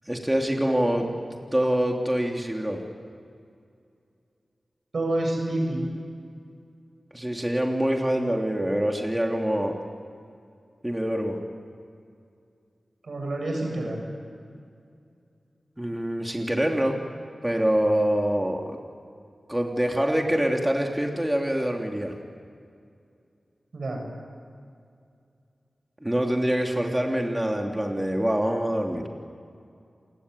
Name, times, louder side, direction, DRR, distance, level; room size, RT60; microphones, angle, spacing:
voice 1, 0.1-1.1 1.5-2.8 7.1-9.7 10.8-11.4 15.8-17.0 17.4-18.8 19.5-22.1 26.0-29.1, equal, 15° right, 1 dB, 3.3 m, -25 dB
voice 2, 4.9-5.9 13.0-14.0 23.7-24.0, right 1 dB, 75° right, 1 dB, 7.8 m, -28 dB
29.0 x 20.5 x 10.0 m, 2.4 s
cardioid pair, 45°, 0 cm